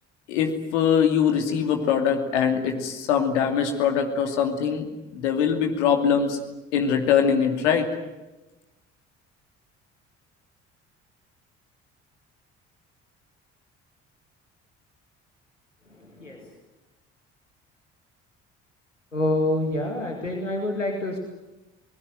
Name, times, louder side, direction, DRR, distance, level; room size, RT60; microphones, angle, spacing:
voice 1, 0.3-4.9 5.1-6.4 6.7-7.9, left 7 dB, 70° left, 5 dB, 2.8 m, -22 dB
voice 2, 16.0-16.5 19.1-21.2, left 1 dB, 90° left, 2 dB, 2.2 m, -27 dB
27.5 x 20.0 x 9.3 m, 1.0 s
figure-of-eight pair, 50°, 36 cm